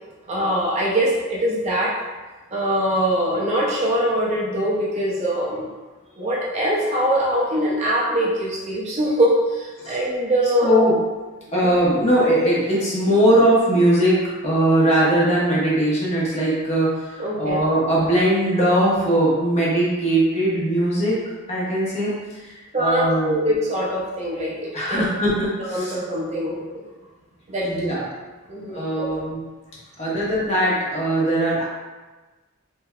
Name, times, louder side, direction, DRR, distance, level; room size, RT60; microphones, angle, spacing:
voice 1, 0.3-1.9 2.5-5.7 6.2-10.7 11.6-11.7 17.2-17.6 22.7-25.0 25.6-26.8 27.5-27.7 28.5-29.1, equal, 30° right, -5 dB, 0.5 m, -23 dB
voice 2, 10.6-11.0 11.5-14.2 14.4-21.2 21.5-23.4 24.7-25.9 27.6-28.0 28.7-29.4 30.0-31.6, right 1 dB, 30° left, -7 dB, 0.9 m, -20 dB
3.3 x 3.3 x 2.3 m, 1.2 s
head